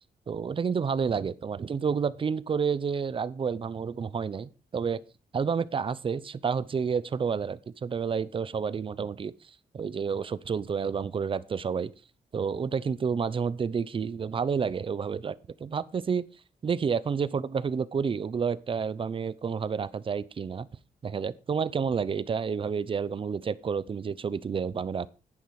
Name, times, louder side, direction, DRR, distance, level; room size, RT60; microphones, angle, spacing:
voice 1, 0.3-5.0 5.3-9.3 9.7-11.9 12.3-16.2 16.6-20.7 21.0-25.1, right 6 dB, 35° right, 0.7 m, -30 dB
11.0 x 10.0 x 4.8 m
cardioid pair, 130°, 15 cm